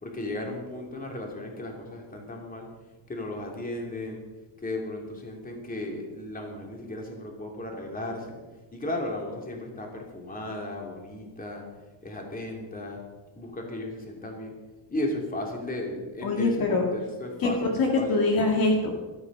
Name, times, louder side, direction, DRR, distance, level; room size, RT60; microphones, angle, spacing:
voice 1, 0.0-2.7 3.1-4.2 4.6-8.4 8.7-11.6 12.0-13.0 13.3-14.5 14.9-18.2, left 1 dB, 20° left, 1 dB, 3.1 m, -35 dB
voice 2, 16.2-16.9 17.4-18.9, left 3 dB, 50° left, 1 dB, 2.1 m, -24 dB
15.5 x 13.5 x 5.5 m, 1.2 s
cardioid pair, 160°, 45 cm